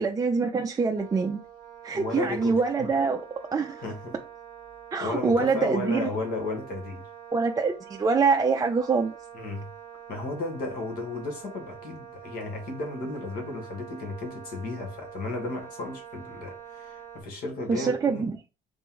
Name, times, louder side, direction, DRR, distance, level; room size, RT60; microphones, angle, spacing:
voice 1, 0.0-1.4 1.8-3.2 3.5-3.8 4.9-6.1 7.3-9.1 17.7-18.3, right 4 dB, 20° right, 0.4 m, -25 dB
Wind instrument woodwind instrument, 1.0-17.2, right 8 dB, 55° right, 0.9 m, -46 dB
voice 2, 1.9-2.9 3.8-4.2 5.0-7.0 9.3-9.7 10.1-18.3, left 2 dB, 65° left, 1.5 m, -34 dB
3.4 x 3.0 x 3.6 m
cardioid pair, 110°, 17 cm